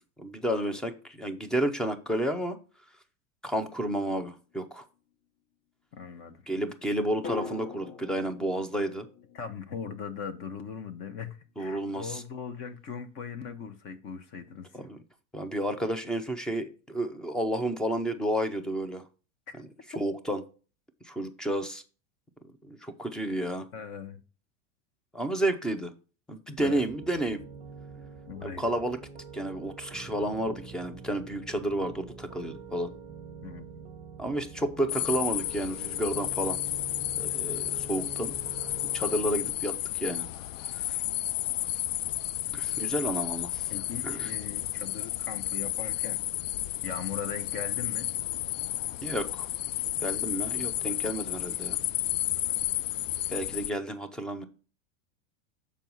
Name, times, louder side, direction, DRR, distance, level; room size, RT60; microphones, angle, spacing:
voice 1, 0.2-2.6 3.4-4.8 6.5-9.1 11.6-12.2 14.7-15.0 15.3-19.0 19.6-19.7 20.0-20.4 21.0-21.8 22.7-23.7 25.1-25.9 26.3-27.4 28.4-29.0 29.3-32.9 34.2-36.6 37.2-38.4 38.9-40.3 40.7-41.0 42.5-43.7 44.0-44.3 49.0-49.5 50.0-51.8 53.3-54.4, right 1 dB, ahead, 0.5 m, -31 dB
sound 1, 4.3-4.8 7.2-11.2 11.5-11.6, left 6 dB, 60° left, 2.9 m, -44 dB
voice 2, 5.9-6.4 9.3-14.9 19.5-19.6 19.9-20.0 23.7-24.2 26.6-26.8 28.3-28.7 33.4-33.9 43.7-46.2 46.8-48.1 52.3-53.0, left 6 dB, 35° left, 1.1 m, -40 dB
Piano, 26.6-39.5, right 5 dB, 20° right, 1.3 m, -45 dB
sound 2, 34.9-53.7, left 14 dB, 85° left, 0.5 m, -32 dB
7.0 x 4.5 x 5.3 m
supercardioid pair, 150°, 37 cm